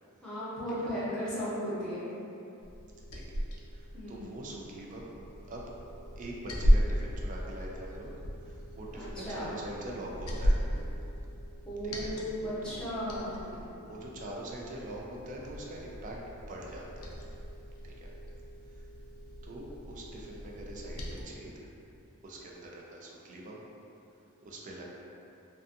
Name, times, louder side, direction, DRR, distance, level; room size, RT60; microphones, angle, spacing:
voice 1, 0.2-2.1 3.9-4.3 8.9-9.5 11.6-13.4, equal, 5° left, -12 dB, 0.7 m, -35 dB
Liquid, 2.6-21.2, equal, 70° left, 0.4 m, -35 dB
voice 2, 3.7-5.1 5.5-5.6 6.2-8.1 8.4-10.6 11.8-12.1 12.6-12.8 13.3-16.2 16.5-17.1 17.8-18.1 18.7-18.8 19.4-21.5 22.2-23.7 24.4-24.9, right 1 dB, 35° right, -2 dB, 0.3 m, -43 dB
2.4 x 2.3 x 2.6 m, 2.8 s
head